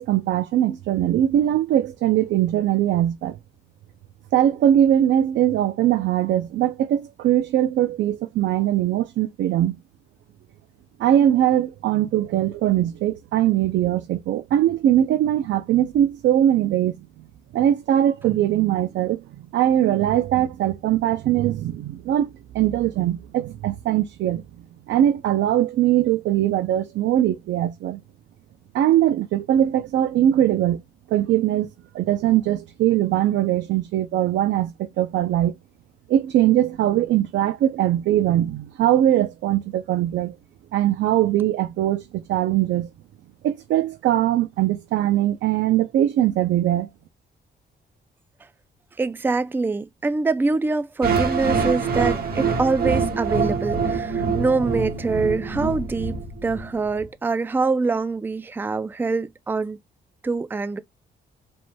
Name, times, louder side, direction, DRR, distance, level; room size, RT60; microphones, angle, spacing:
voice 1, 0.0-3.4 4.3-9.8 11.0-16.9 17.5-24.4 24.9-28.0 28.7-30.8 31.1-31.7 31.9-35.5 36.1-40.4 40.7-42.9 43.4-46.9, right 12 dB, 90° right, 0.5 m, -21 dB
voice 2, 49.0-59.8 60.2-60.8, right 3 dB, 10° right, 0.4 m, -24 dB
sound 1, 51.0-57.0, right 5 dB, 55° right, 1.4 m, -25 dB
5.1 x 3.6 x 2.2 m
cardioid pair, 115°, 18 cm